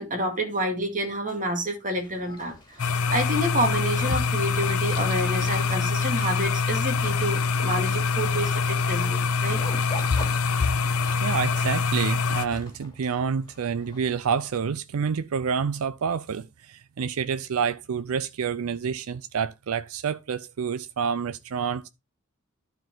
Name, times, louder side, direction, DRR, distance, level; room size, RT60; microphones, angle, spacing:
voice 1, 0.0-9.6, right 1 dB, 40° right, 2.2 m, -29 dB
Zipper (clothing), 2.0-14.5, left 1 dB, 20° left, 2.8 m, -45 dB
sound 1, 2.8-12.5, left 4 dB, 85° left, 0.7 m, -25 dB
voice 2, 11.2-21.9, right 6 dB, 75° right, 0.4 m, -28 dB
11.5 x 4.6 x 3.8 m
head